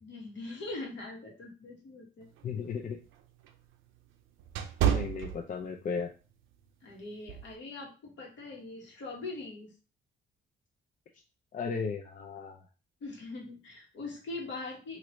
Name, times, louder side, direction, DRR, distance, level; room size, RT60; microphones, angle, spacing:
voice 1, 0.0-2.3 6.8-9.7 13.0-15.0, left 3 dB, 70° left, 0 dB, 1.2 m, -42 dB
sound 1, 2.3-6.0 6.4-6.7 7.3-7.6, right 9 dB, 80° right, 0.4 m, -32 dB
voice 2, 2.4-3.0 4.8-6.1 11.5-12.6, left 5 dB, 40° left, 2 dB, 0.4 m, -35 dB
3.0 x 2.5 x 3.1 m, 0.35 s
cardioid pair, 90°, 20 cm